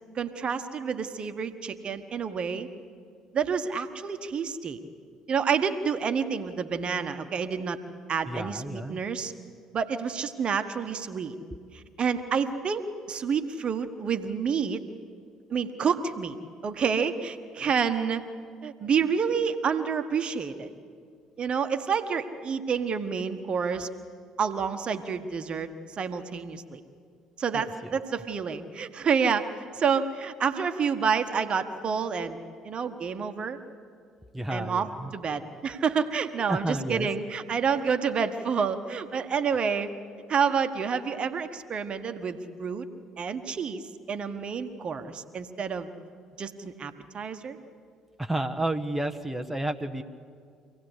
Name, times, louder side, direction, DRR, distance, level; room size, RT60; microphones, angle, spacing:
voice 1, 0.1-2.7 3.3-4.8 5.3-7.8 8.1-9.3 9.7-11.3 11.7-14.8 15.5-16.3 16.6-18.2 18.6-20.7 21.4-23.9 24.4-25.7 26.0-26.8 27.4-29.5 29.7-32.4 32.6-33.6 34.5-39.9 40.3-42.8 43.2-43.8 44.1-45.9 46.4-47.6, right 6 dB, 40° right, 8 dB, 1.3 m, -28 dB
voice 2, 8.3-9.0 27.5-27.9 34.3-35.1 36.5-37.1 48.2-50.0, right 1 dB, 5° right, 4 dB, 1.2 m, -31 dB
25.5 x 17.0 x 8.3 m, 2.2 s
figure-of-eight pair, 55°, 3 cm